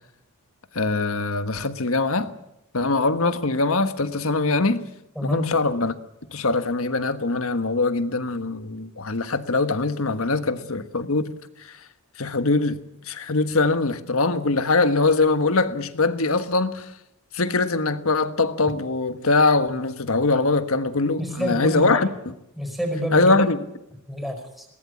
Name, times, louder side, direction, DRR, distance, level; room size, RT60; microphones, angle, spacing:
voice 1, 0.7-2.3 2.7-4.8 5.2-5.9 6.3-11.3 11.6-11.8 12.2-12.8 13.1-16.9 17.3-22.3 23.1-23.6, left 3 dB, 70° left, 1.4 m, -22 dB
voice 2, 5.2-5.5 21.2-22.1 22.6-23.4 24.1-24.7, equal, ahead, 5.2 m, -28 dB
21.5 x 19.0 x 8.4 m
head